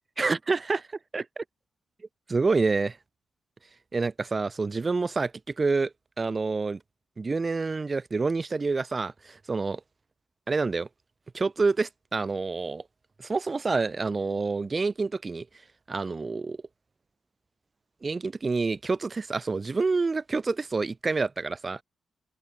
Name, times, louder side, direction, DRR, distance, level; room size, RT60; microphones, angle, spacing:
voice 1, 0.2-0.8 1.1-1.4 2.3-3.0 3.9-5.3 5.6-6.8 7.2-9.8 10.5-10.9 11.3-12.8 13.2-15.5 15.9-16.6 18.0-21.8, right 4 dB, 35° right, 0.5 m, -27 dB
cardioid pair, 75°, 0 cm